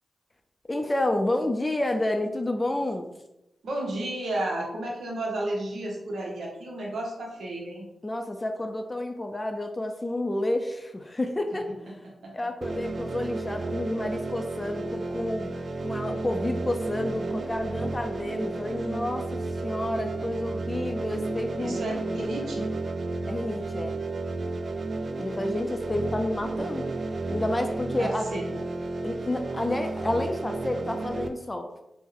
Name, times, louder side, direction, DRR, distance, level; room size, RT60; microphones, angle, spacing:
voice 1, 0.7-3.1 8.0-12.0 12.3-15.5 15.8-21.8 22.2-22.3 23.3-24.0 25.2-26.9 27.3-28.3 29.0-31.7, left 1 dB, 25° left, 5 dB, 0.4 m, -30 dB
voice 2, 3.6-7.8 12.2-12.3 21.6-22.7 28.0-28.6, right 1 dB, 75° right, -2 dB, 0.7 m, -32 dB
sound 1, 12.6-31.3, right 3 dB, 60° right, 0.3 m, -32 dB
3.0 x 2.1 x 3.6 m, 0.90 s
cardioid pair, 50°, 0 cm